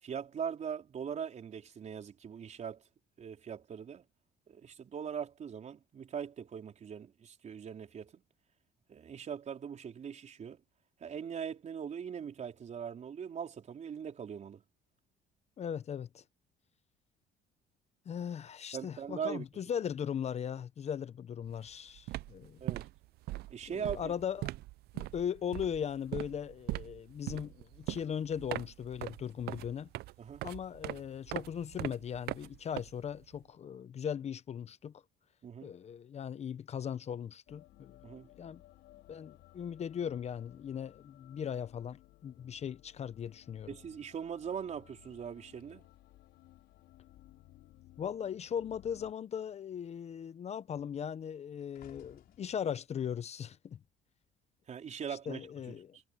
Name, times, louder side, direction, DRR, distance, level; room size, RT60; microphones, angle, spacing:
voice 1, 0.0-2.8 3.2-4.0 4.5-8.2 8.9-10.6 11.0-14.6 18.7-19.4 22.6-22.9 23.5-24.1 30.2-30.5 35.4-35.8 38.0-38.3 43.7-45.9 54.7-56.0, right 7 dB, 45° right, 4.3 m, -41 dB
voice 2, 15.6-16.2 18.1-22.6 23.7-24.5 24.9-29.9 30.4-34.9 35.6-38.0 38.4-38.6 39.1-43.7 48.0-53.8 55.1-56.0, left 8 dB, 40° left, 0.7 m, -38 dB
sound 1, 21.5-21.7 21.9-33.4, right 17 dB, 70° right, 0.4 m, -41 dB
sound 2, 37.5-49.1, left 16 dB, 85° left, 4.9 m, -59 dB
sound 3, 45.5-48.2 48.5-48.9 49.2-54.6 55.3-55.6, left 12 dB, 65° left, 5.8 m, -65 dB
cardioid pair, 110°, 17 cm